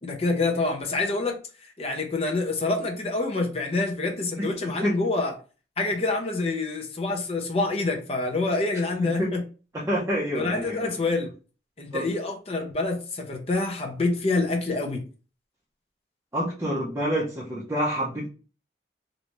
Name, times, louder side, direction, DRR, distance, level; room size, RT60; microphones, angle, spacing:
voice 1, 0.0-5.3 5.8-9.4 10.3-11.3 11.8-15.0, left 3 dB, 35° left, 0.7 m, -27 dB
voice 2, 9.0-9.3 9.7-10.9 11.9-12.1 16.3-18.3, equal, 15° right, 0.7 m, -27 dB
3.2 x 2.7 x 3.1 m
head